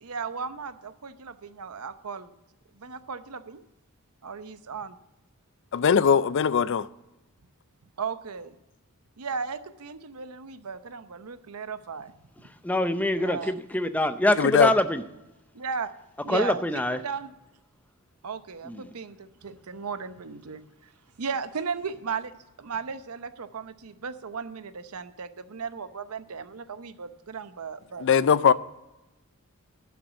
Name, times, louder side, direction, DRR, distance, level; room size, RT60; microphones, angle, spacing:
voice 1, 0.0-2.3 2.7-3.6 4.2-5.0 8.0-8.6 9.2-12.1 13.2-13.5 15.5-15.9 16.2-17.3 18.2-20.9 21.2-28.1, right 5 dB, 80° right, 0.7 m, -36 dB
voice 2, 5.7-6.9 14.4-14.7 28.0-28.5, left 7 dB, 55° left, 0.4 m, -20 dB
voice 3, 12.6-15.0 16.3-17.0 18.7-18.8, left 1 dB, 5° left, 0.5 m, -24 dB
11.5 x 6.1 x 8.1 m
head